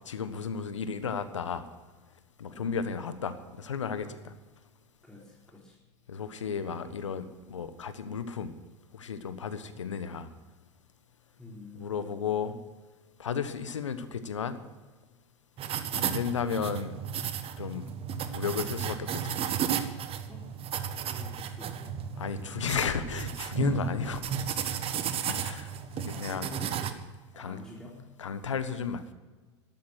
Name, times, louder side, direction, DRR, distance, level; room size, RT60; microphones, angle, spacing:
voice 1, 0.0-1.6 2.4-4.3 6.1-8.5 8.9-10.3 11.7-12.6 13.2-14.6 15.9-17.0 17.6-17.9 18.3-19.4 22.2-24.2 25.3-26.4 27.4-27.6 28.2-29.1, left 6 dB, 85° left, 11 dB, 1.3 m, -33 dB
voice 2, 5.0-5.8 11.4-12.3 20.3-20.5 21.0-22.0 23.8-24.2 26.1-27.0 27.3-28.0, left 2 dB, 5° left, -4 dB, 3.8 m, -48 dB
sound 1, 15.6-26.9, right 8 dB, 40° right, 1.4 m, -33 dB
13.0 x 12.5 x 6.3 m, 1.3 s
hypercardioid pair, 90°, 15 cm